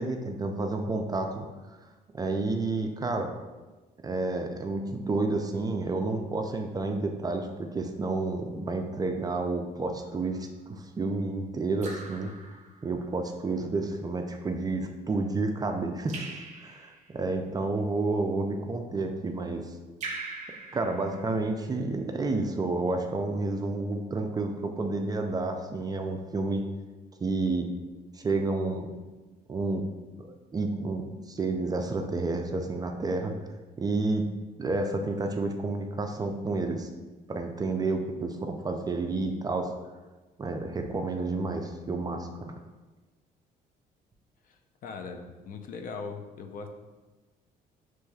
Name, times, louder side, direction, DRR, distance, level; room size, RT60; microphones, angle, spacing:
voice 1, 0.0-1.5 2.1-3.3 4.0-12.5 12.8-16.3 16.6-19.7 20.7-26.7 27.2-27.7 28.1-28.9 29.5-29.9 30.2-33.4 33.8-34.3 34.6-36.9 37.3-39.7 40.4-42.5, right 3 dB, 25° right, 4 dB, 0.4 m, -30 dB
Raindrop / Drip, 10.0-10.5 11.8-13.2 16.1-17.2 20.0-21.7, right 3 dB, 45° right, 0.8 m, -42 dB
voice 2, 44.8-46.7, left 4 dB, 55° left, 5 dB, 0.5 m, -39 dB
6.2 x 3.1 x 2.3 m, 1.2 s
cardioid pair, 110°, 17 cm